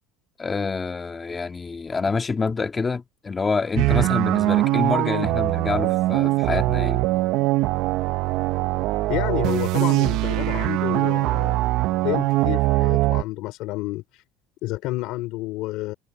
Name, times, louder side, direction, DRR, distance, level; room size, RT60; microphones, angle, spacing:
voice 1, 0.4-7.1, left 4 dB, 20° left, 1.9 m, -27 dB
sound 1, 3.8-13.2, right 18 dB, 60° right, 0.6 m, -22 dB
voice 2, 9.1-11.7 12.0-14.2 14.6-15.9, left 18 dB, 65° left, 4.0 m, -30 dB
cardioid pair, 135°, 0 cm